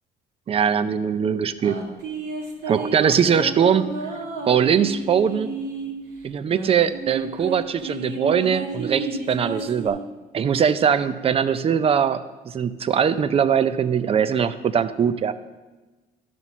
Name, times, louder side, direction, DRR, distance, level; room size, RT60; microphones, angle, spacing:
voice 1, 0.5-1.8 2.7-3.9 4.5-5.5 6.2-10.0 10.3-15.3, right 7 dB, 35° right, 13 dB, 0.5 m, -21 dB
sound 1, 1.6-5.9 6.5-9.9, right 3 dB, 80° right, 2.0 m, -32 dB
12.0 x 4.3 x 6.0 m, 1.2 s
cardioid pair, 110°, 17 cm